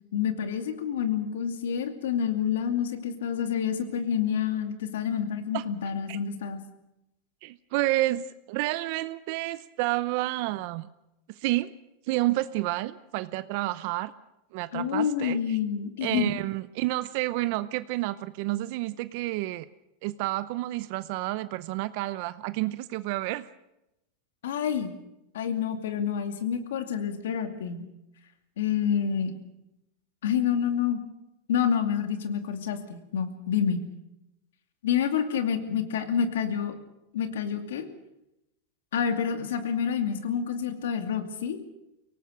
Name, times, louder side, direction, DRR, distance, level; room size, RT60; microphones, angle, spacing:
voice 1, 0.1-6.6 14.7-16.3 24.4-24.9 25.3-27.8 28.6-29.3 30.2-31.0 31.5-33.8 34.8-36.7 37.1-37.9 38.9-41.6, left 8 dB, 90° left, 7 dB, 2.5 m, -28 dB
voice 2, 7.4-10.9 11.3-11.7 12.0-14.1 14.5-15.6 16.0-19.7 20.0-23.5, right 17 dB, 55° right, 15 dB, 0.7 m, -30 dB
24.0 x 18.0 x 6.4 m, 0.88 s
supercardioid pair, 140°, 0 cm